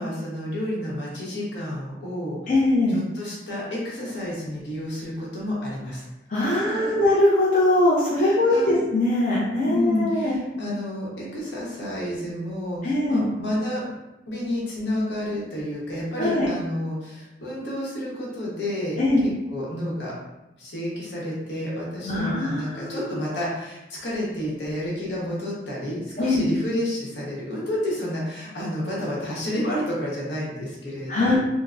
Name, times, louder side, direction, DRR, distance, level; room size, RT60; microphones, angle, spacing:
voice 1, 0.0-2.4 2.9-6.1 6.3-7.0 8.2-8.8 9.6-13.8 14.3-19.0 19.2-20.1 20.6-31.4, left 1 dB, 75° left, -5 dB, 1.0 m, -30 dB
voice 2, 2.5-3.0 6.3-10.4 12.8-13.2 16.2-16.5 19.0-19.3 22.0-23.1 26.2-26.5 31.1-31.4, left 1 dB, 45° left, -7 dB, 0.6 m, -21 dB
3.7 x 2.0 x 2.4 m, 0.98 s
head